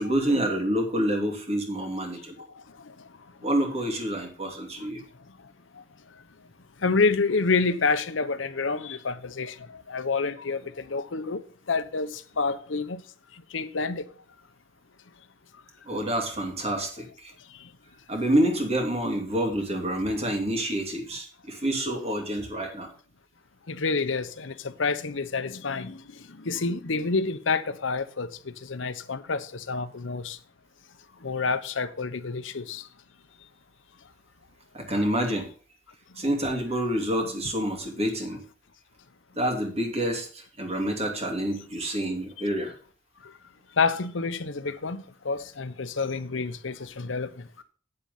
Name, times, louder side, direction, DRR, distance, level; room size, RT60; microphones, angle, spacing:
voice 1, 0.0-2.4 3.4-5.0 15.9-17.3 18.1-22.9 34.7-35.5 36.2-38.4 39.4-42.7, right 1 dB, 35° right, 2.6 m, -27 dB
voice 2, 6.8-11.4 11.7-13.0 13.5-14.1 21.9-22.0 23.7-26.0 26.3-30.4 31.2-32.8 37.2-37.3 43.8-47.3, left 4 dB, 90° left, 0.9 m, -28 dB
9.0 x 7.4 x 5.3 m
head